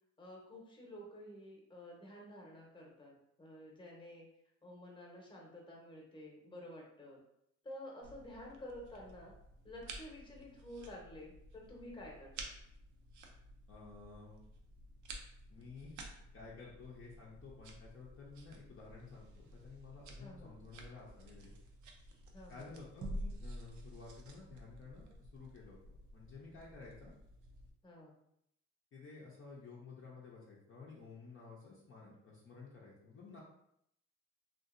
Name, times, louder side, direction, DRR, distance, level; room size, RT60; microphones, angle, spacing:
voice 1, 0.2-4.3 4.6-7.2 7.6-9.3 9.6-12.3 20.2-20.6 22.3-22.7 27.8-28.1, left 1 dB, 15° left, -2 dB, 0.9 m, -51 dB
sound 1, 8.0-27.7, right 1 dB, 75° right, 0.6 m, -51 dB
voice 2, 13.7-14.5 15.5-21.5 22.5-27.1 28.9-33.4, left 4 dB, 45° left, -5 dB, 0.6 m, -53 dB
2.7 x 2.5 x 2.5 m, 0.76 s
cardioid pair, 90°, 30 cm